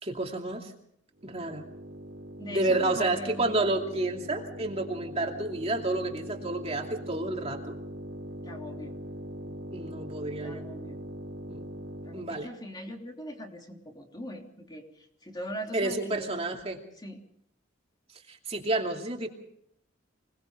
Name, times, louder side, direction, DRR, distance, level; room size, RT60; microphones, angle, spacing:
voice 1, 0.0-0.7 1.2-1.6 2.5-7.6 9.7-10.7 11.5-11.7 12.1-12.5 15.7-16.8 18.3-19.3, right 2 dB, 35° right, 2 dB, 2.7 m, -30 dB
sound 1, 1.2-12.4, equal, 85° right, 3.8 m, -41 dB
voice 2, 2.4-3.6 8.4-8.9 10.4-11.0 12.0-16.3 17.0-17.2, equal, 20° left, 1 dB, 3.3 m, -41 dB
26.0 x 20.0 x 5.2 m, 0.71 s
head